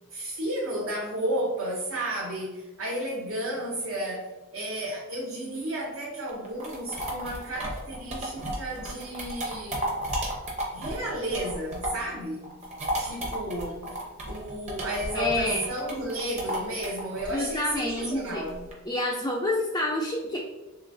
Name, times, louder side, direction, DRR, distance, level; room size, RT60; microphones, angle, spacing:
voice 1, 0.1-9.9 10.7-12.5 13.0-13.8 14.2-18.6, right 1 dB, 65° right, -4 dB, 0.7 m, -32 dB
sound 1, 6.3-12.1 12.4-18.7, right 1 dB, 30° right, 0.7 m, -34 dB
voice 2, 15.1-15.7 17.3-18.4 18.9-20.4, left 1 dB, 15° left, -3 dB, 0.3 m, -28 dB
3.8 x 3.1 x 2.6 m, 1.1 s
head